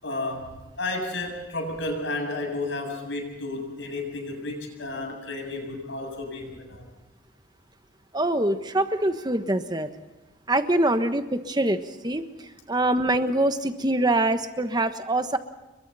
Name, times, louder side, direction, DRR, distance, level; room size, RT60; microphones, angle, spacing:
voice 1, 0.0-6.8, left 2 dB, 65° left, 2 dB, 7.5 m, -32 dB
voice 2, 8.1-9.9 10.5-12.2 12.7-15.4, right 1 dB, 20° right, 8 dB, 1.3 m, -24 dB
29.5 x 23.0 x 4.3 m, 1.1 s
head